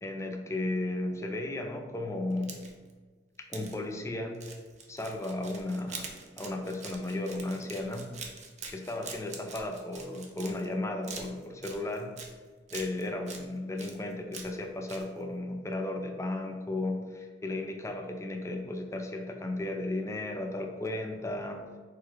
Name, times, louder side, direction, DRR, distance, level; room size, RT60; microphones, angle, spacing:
voice 1, 0.0-2.6 3.5-4.4 4.9-8.1 8.7-12.1 12.7-21.6, left 2 dB, 15° left, 3 dB, 0.5 m, -35 dB
sound 1, 2.3-2.9 3.5-3.7 4.3-10.7 11.0-12.3 12.7-13.4 13.8-14.6 14.9-15.0, right 5 dB, 40° right, 0.6 m, -44 dB
4.5 x 2.3 x 4.8 m, 1.4 s
head